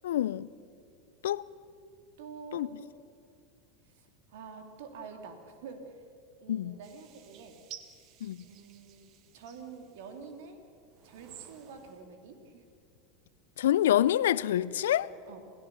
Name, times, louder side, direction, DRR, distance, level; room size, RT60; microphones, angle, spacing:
voice 1, 0.0-0.5 1.2-1.4 2.5-2.7 6.5-6.8 8.2-8.4 13.6-15.1, left 12 dB, 75° left, 0.5 m, -26 dB
voice 2, 2.2-2.9 3.8-6.0 6.4-7.6 8.4-9.1 9.3-10.6 11.0-12.6 15.3-15.4, right 5 dB, 65° right, 2.8 m, -47 dB
sound 1, 6.8-10.3 10.9-12.0, right 10 dB, 50° right, 1.6 m, -53 dB
27.5 x 17.0 x 7.0 m
hypercardioid pair, 85°, 0 cm